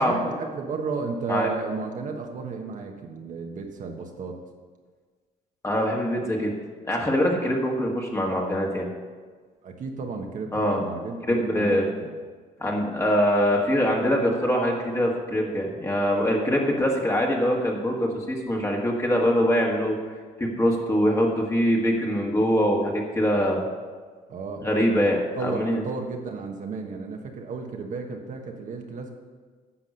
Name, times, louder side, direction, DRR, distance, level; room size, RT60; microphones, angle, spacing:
voice 1, 0.0-4.4 9.6-12.1 24.3-29.1, right 4 dB, 50° right, 2 dB, 1.2 m, -33 dB
voice 2, 5.6-6.5 6.9-8.9 10.5-10.8 11.3-11.8 12.6-19.9 20.4-23.6 24.6-25.8, equal, 15° left, -1 dB, 1.7 m, -23 dB
10.0 x 5.9 x 6.7 m, 1.5 s
cardioid pair, 110°, 17 cm